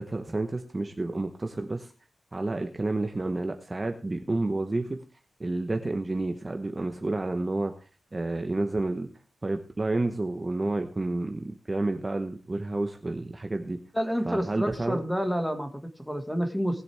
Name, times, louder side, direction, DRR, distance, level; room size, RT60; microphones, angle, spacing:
voice 1, 0.0-1.9 2.3-5.0 5.4-7.7 8.1-9.1 9.4-13.8 14.3-15.0, right 2 dB, 25° right, 6 dB, 1.0 m, -30 dB
voice 2, 13.9-16.8, equal, ahead, 7 dB, 1.7 m, -29 dB
19.5 x 7.8 x 3.4 m, 0.33 s
wide cardioid pair, 145°, 0 cm